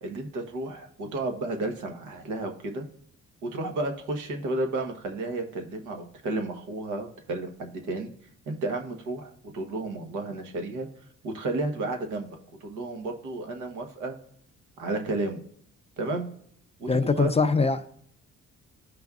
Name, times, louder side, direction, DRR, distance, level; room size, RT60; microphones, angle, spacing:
voice 1, 0.0-2.9 3.4-8.1 8.5-10.9 11.2-12.3 12.6-14.1 14.8-15.4 16.0-16.3 16.8-17.3, right 2 dB, 85° right, 1.1 m, -32 dB
voice 2, 16.9-17.9, left 4 dB, 20° left, 0.4 m, -23 dB
13.0 x 5.1 x 2.4 m
cardioid pair, 90°, 30 cm